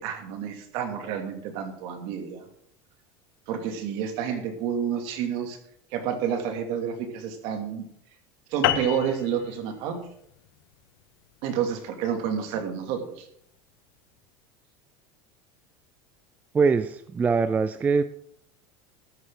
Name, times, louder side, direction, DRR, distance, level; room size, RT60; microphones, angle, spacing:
voice 1, 0.0-2.5 3.5-5.6 5.9-7.8 8.5-10.1 11.4-13.3, right 8 dB, 55° right, 5 dB, 2.5 m, -29 dB
sound 1, 8.6-13.4, left 13 dB, 85° left, 1.1 m, -32 dB
voice 2, 16.5-18.0, right 5 dB, 15° right, 12 dB, 0.4 m, -22 dB
14.0 x 11.5 x 3.8 m, 0.68 s
supercardioid pair, 160°, 12 cm